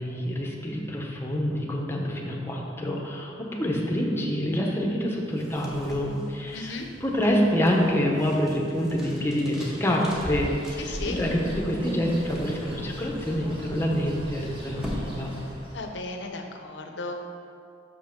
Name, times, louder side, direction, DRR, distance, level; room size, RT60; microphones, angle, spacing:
voice 1, 0.0-15.3, equal, 15° left, -1 dB, 0.9 m, -27 dB
sound 1, 5.3-15.9, equal, 5° right, 1.1 m, -43 dB
voice 2, 6.5-6.9 10.8-11.2 15.7-17.2, left 2 dB, 70° left, 4 dB, 0.8 m, -35 dB
Bird, 10.1-16.0, equal, 30° right, 1.3 m, -37 dB
6.6 x 5.5 x 5.2 m, 2.4 s
head